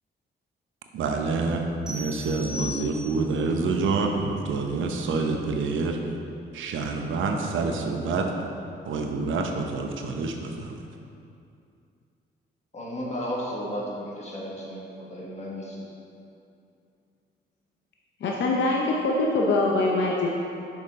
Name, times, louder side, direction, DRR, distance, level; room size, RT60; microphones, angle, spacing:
voice 1, 0.9-6.0 6.5-8.3 8.8-10.8, right 4 dB, 75° right, 3 dB, 0.7 m, -27 dB
sound 1, 1.9-3.4, left 3 dB, 5° right, 1.4 m, -38 dB
voice 2, 12.7-15.9, equal, 35° left, -4 dB, 1.7 m, -34 dB
voice 3, 18.2-20.4, left 2 dB, 65° left, -2 dB, 0.7 m, -23 dB
6.6 x 5.9 x 3.6 m, 2.6 s
cardioid pair, 80°, 20 cm